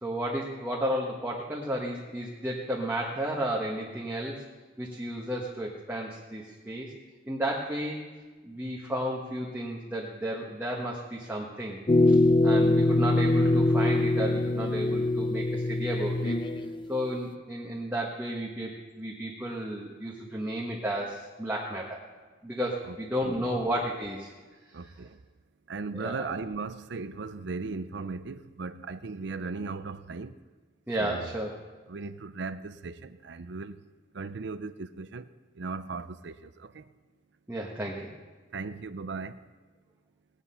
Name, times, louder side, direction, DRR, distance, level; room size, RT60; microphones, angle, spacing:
voice 1, 0.0-4.4 4.8-6.9 7.3-8.1 8.4-11.8 12.1-12.2 12.4-16.4 16.9-22.0 22.4-24.3 25.9-26.3 30.9-31.5 37.5-38.1, right 1 dB, 10° right, 1.4 m, -33 dB
sound 1, 11.9-16.9, left 2 dB, 25° left, 0.5 m, -23 dB
voice 2, 24.7-25.2 25.7-30.4 31.0-31.3 31.9-33.8 34.1-35.3 35.6-36.9 38.5-39.4, right 4 dB, 65° right, 0.6 m, -37 dB
17.5 x 9.8 x 5.7 m
head